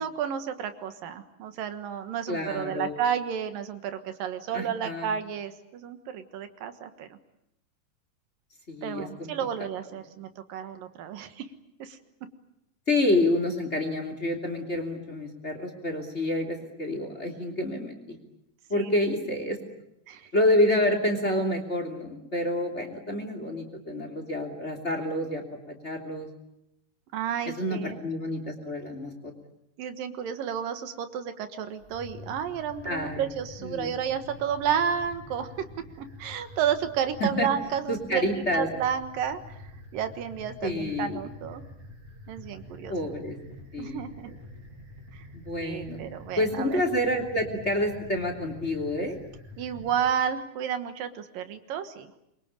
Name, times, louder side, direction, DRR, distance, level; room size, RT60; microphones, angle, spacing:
voice 1, 0.0-7.2 8.8-11.5 11.8-12.0 18.7-18.9 20.1-20.3 27.1-28.0 29.8-35.7 36.0-39.6 39.9-41.6 42.3-43.0 43.8-44.3 45.1-45.3 45.6-46.8 49.6-52.1, right 8 dB, 80° right, 9 dB, 3.1 m, -31 dB
voice 2, 2.3-2.9 4.5-5.1 8.7-9.4 12.9-18.2 18.7-19.6 20.3-26.3 27.6-29.3 32.8-33.2 33.6-33.9 37.2-37.5 37.9-38.7 40.6-41.2 42.9-43.4 43.7-44.0 45.3-46.0 46.4-49.2, left 1 dB, 20° left, 4 dB, 3.2 m, -28 dB
sound 1, 31.8-50.1, left 1 dB, 55° right, 4.6 m, -47 dB
25.5 x 23.5 x 8.9 m, 0.81 s
omnidirectional pair, 3.9 m